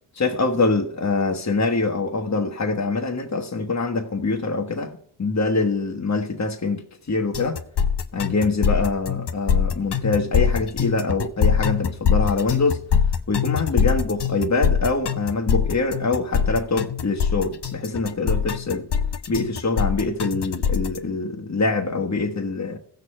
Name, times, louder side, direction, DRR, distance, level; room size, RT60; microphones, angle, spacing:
voice 1, 0.1-4.9 5.2-7.6 8.1-12.8 13.3-18.9 19.3-22.8, left 3 dB, 35° left, 1.3 m, -24 dB
sound 1, 7.3-21.0, left 7 dB, 55° left, 0.9 m, -23 dB
15.5 x 6.7 x 4.4 m
cardioid pair, 50°, 49 cm